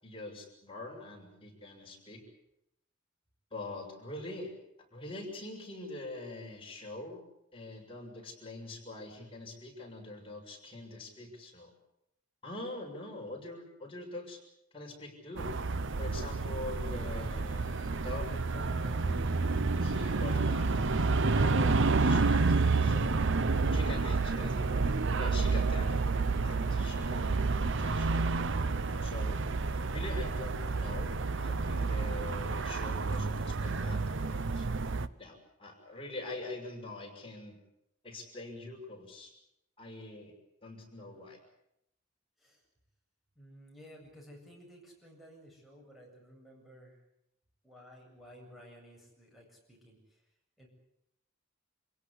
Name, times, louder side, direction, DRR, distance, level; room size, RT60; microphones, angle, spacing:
voice 1, 0.0-2.2 3.5-4.5 4.9-7.2 7.5-11.7 12.4-14.4 14.7-15.5 16.0-19.2 19.8-20.7 21.3-23.2 23.7-24.9 25.2-25.9 26.4-28.4 28.7-29.4 29.9-34.7 35.2-37.6 38.0-39.3 39.8-40.3 40.6-41.4, left 2 dB, 25° left, -1 dB, 6.7 m, -44 dB
sound 1, 15.4-35.1, right 3 dB, 65° right, 0.8 m, -29 dB
voice 2, 43.4-47.0 47.6-50.2 50.6-50.7, equal, ahead, -1 dB, 7.9 m, -54 dB
27.0 x 17.0 x 8.4 m, 0.80 s
head